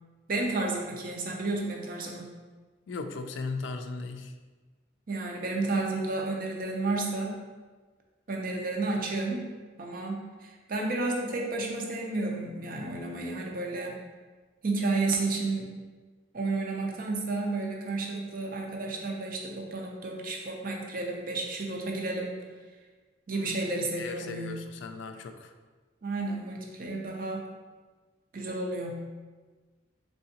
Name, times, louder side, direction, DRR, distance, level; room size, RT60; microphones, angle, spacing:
voice 1, 0.3-2.3 5.1-7.4 8.3-9.5 9.8-14.0 14.6-15.7 16.3-22.4 23.3-24.7 26.0-27.5 28.3-29.1, right 2 dB, 45° right, 0 dB, 0.5 m, -31 dB
voice 2, 2.9-4.3 23.3-23.5 24.0-25.5, left 4 dB, 65° left, 7 dB, 0.3 m, -37 dB
3.7 x 3.4 x 2.8 m, 1.4 s
head